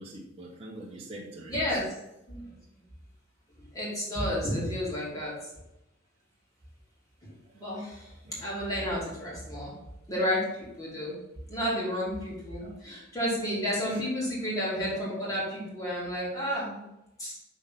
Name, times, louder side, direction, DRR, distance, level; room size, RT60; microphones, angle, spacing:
voice 1, 0.0-1.9 7.4-7.6 8.2-8.4 12.6-12.8 13.9-14.0, right 1 dB, 30° right, -4 dB, 0.9 m, -44 dB
voice 2, 1.5-1.8 2.3-2.5 3.6-5.5 7.2-9.7 10.1-11.2 11.5-16.8 17.2-17.4, equal, 20° left, -6 dB, 2.7 m, -31 dB
5.8 x 4.0 x 5.5 m, 0.89 s
head